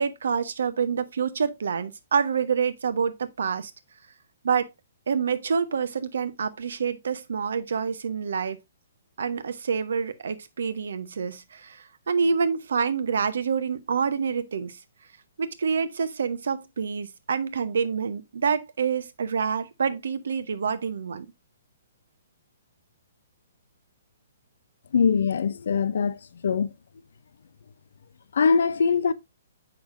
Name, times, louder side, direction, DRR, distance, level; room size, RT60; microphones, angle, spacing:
voice 1, 0.0-3.7 4.4-4.7 5.1-8.6 9.2-14.8 15.4-21.3, right 6 dB, 70° right, 0.8 m, -27 dB
voice 2, 24.9-26.2 26.4-26.7 28.3-29.1, left 6 dB, 65° left, 0.6 m, -22 dB
7.1 x 5.9 x 2.5 m
figure-of-eight pair, 125°, 0 cm